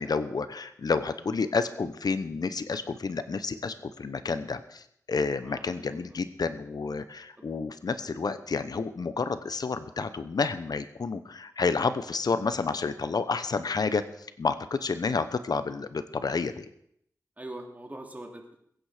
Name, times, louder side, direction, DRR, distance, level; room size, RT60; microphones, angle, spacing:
voice 1, 0.0-14.0 14.4-16.7, left 4 dB, 75° left, 11 dB, 0.9 m, -30 dB
voice 2, 5.4-6.0 7.4-7.5 17.4-18.6, right 1 dB, 25° right, 2 dB, 2.9 m, -43 dB
21.5 x 9.3 x 5.0 m, 0.70 s
wide cardioid pair, 70°, 7 cm